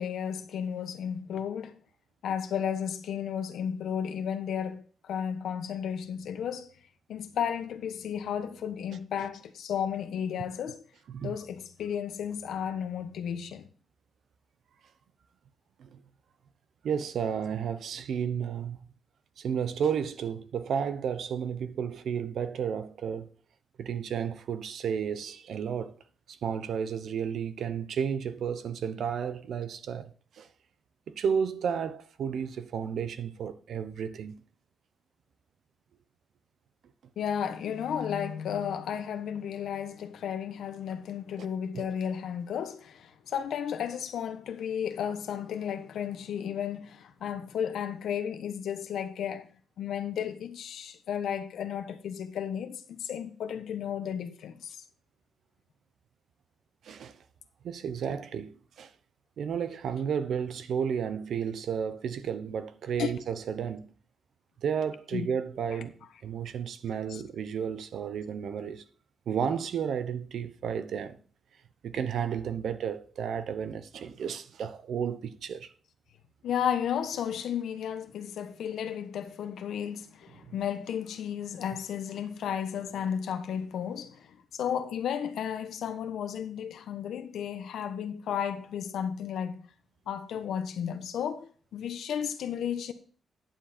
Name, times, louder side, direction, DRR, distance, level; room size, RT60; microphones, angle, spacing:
voice 1, 0.0-1.8 2.2-6.7 7.1-10.8 11.2-13.7 37.2-49.5 49.8-54.8 63.0-63.1 65.1-65.3 67.1-67.2 76.4-89.6 90.1-92.9, left 8 dB, 85° left, 1.1 m, -33 dB
voice 2, 16.8-18.9 19.4-23.3 23.8-25.9 26.3-30.5 31.1-34.3 41.7-41.9 56.8-57.2 57.6-58.9 59.4-63.9 64.6-66.0 66.2-68.8 69.3-71.2 71.8-75.7, right 7 dB, 70° right, 0.9 m, -32 dB
10.5 x 7.4 x 4.3 m
cardioid pair, 130°, 0 cm